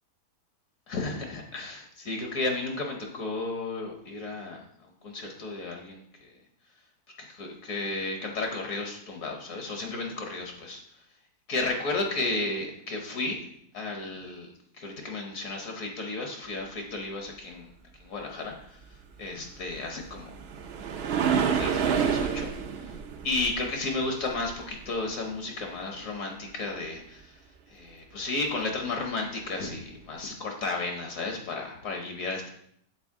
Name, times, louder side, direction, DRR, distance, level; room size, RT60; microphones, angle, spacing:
voice 1, 0.9-6.3 7.2-10.8 11.5-13.5 13.7-14.5 14.8-17.7 18.0-18.8 19.2-20.3 21.5-22.5 22.8-22.9 23.2-27.3 27.7-32.5, left 3 dB, 65° left, 2 dB, 1.3 m, -33 dB
sound 1, 19.7-25.0 28.8-29.0 29.6-29.7, right 7 dB, 60° right, 0.6 m, -29 dB
7.2 x 4.0 x 3.5 m, 0.69 s
omnidirectional pair, 1.6 m